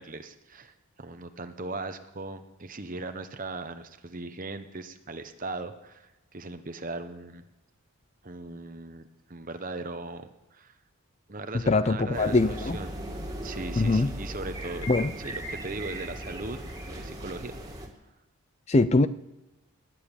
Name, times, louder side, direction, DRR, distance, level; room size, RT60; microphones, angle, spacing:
voice 1, 0.0-7.5 8.2-10.8 11.3-12.9 13.4-14.9 15.2-17.6, right 3 dB, 35° right, 8 dB, 0.9 m, -39 dB
voice 2, 11.7-12.8 13.8-14.1 14.9-15.1 18.7-19.1, left 3 dB, 30° left, 14 dB, 0.4 m, -22 dB
sound 1, 12.1-17.9, right 1 dB, 15° right, 2.2 m, -37 dB
20.0 x 7.4 x 8.9 m, 1.0 s
head